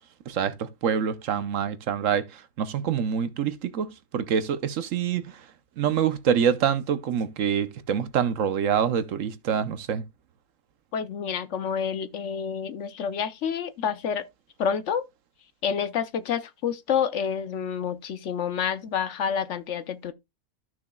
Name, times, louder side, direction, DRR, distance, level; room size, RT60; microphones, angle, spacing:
voice 1, 0.3-5.4 5.8-10.0, right 8 dB, 65° right, 1.1 m, -26 dB
voice 2, 10.9-14.3 14.6-15.1 15.6-20.1, left 7 dB, 65° left, 0.9 m, -28 dB
14.0 x 6.1 x 2.3 m
omnidirectional pair, 1.5 m